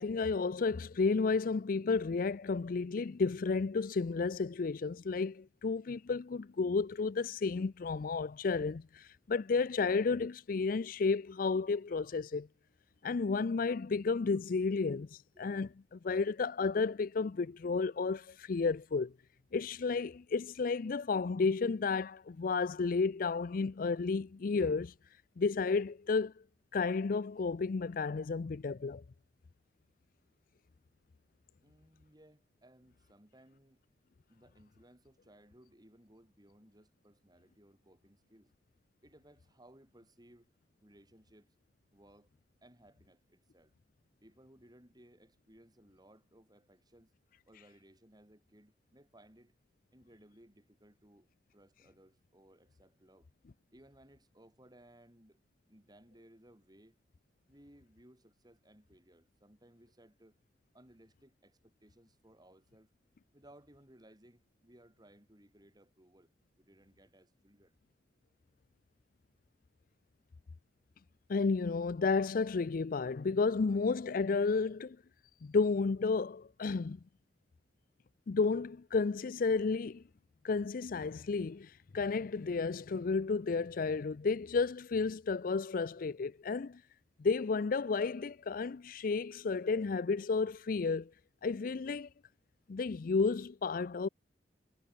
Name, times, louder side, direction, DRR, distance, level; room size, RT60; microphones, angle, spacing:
voice 1, 0.0-12.5 13.0-15.1 15.4-19.1 19.5-24.9 25.4-26.3 26.7-29.0 71.3-75.0 75.4-77.0 78.3-80.0 80.4-86.8 87.2-91.1 91.4-92.1 92.7-94.1, left 4 dB, 55° left, 0.4 m, -32 dB
voice 2, 31.6-33.8 34.3-38.5 39.0-40.5 40.8-41.5 41.9-42.3 42.6-43.7 44.2-47.1 47.5-49.5 49.9-51.3 51.5-53.3 53.7-57.0 57.5-60.4 60.7-62.9 63.3-66.3 66.6-67.8, right 1 dB, 25° right, 6.3 m, -62 dB
head